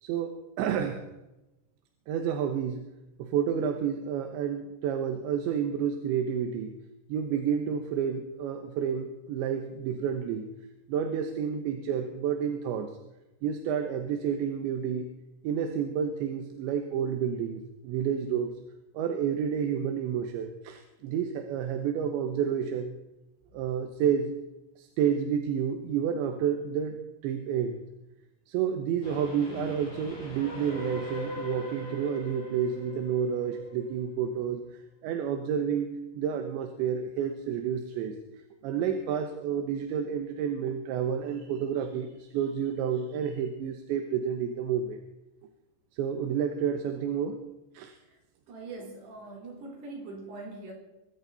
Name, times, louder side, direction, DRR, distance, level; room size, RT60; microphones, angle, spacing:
voice 1, 0.0-1.0 2.1-2.8 3.2-6.7 7.1-10.5 10.9-12.9 13.4-15.1 15.4-18.5 19.0-23.0 23.5-24.4 24.8-27.8 28.5-34.6 35.0-35.9 36.2-38.2 38.6-45.0 45.9-47.4 47.8-48.0, right 8 dB, 80° right, 6 dB, 3.4 m, -30 dB
Train, 29.0-34.3, left 2 dB, 40° left, 7.1 m, -41 dB
voice 2, 48.5-50.7, right 3 dB, 60° right, 0 dB, 6.3 m, -42 dB
23.5 x 13.5 x 4.2 m, 0.97 s
omnidirectional pair, 5.4 m